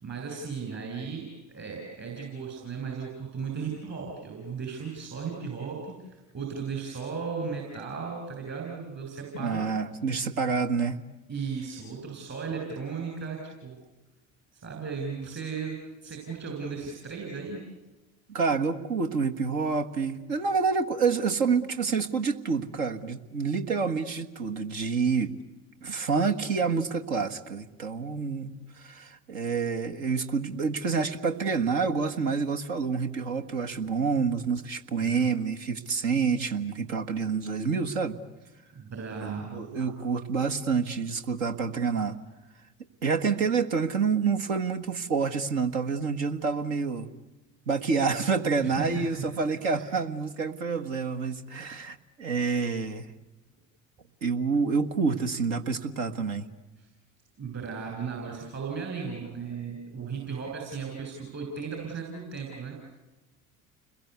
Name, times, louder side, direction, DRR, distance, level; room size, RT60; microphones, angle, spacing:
voice 1, 0.0-1.2 1.5-9.7 11.3-13.8 14.5-17.6 34.9-35.4 38.7-39.9 48.6-49.8 56.8-56.9 57.4-62.7, right 5 dB, 40° right, 0 dB, 7.3 m, -36 dB
voice 2, 9.3-11.0 18.3-25.3 25.8-38.2 39.2-42.2 43.0-47.1 47.7-53.1 54.2-56.5, right 5 dB, 70° right, 6 dB, 1.6 m, -28 dB
30.0 x 22.0 x 8.2 m, 1.1 s
figure-of-eight pair, 60°, 40 cm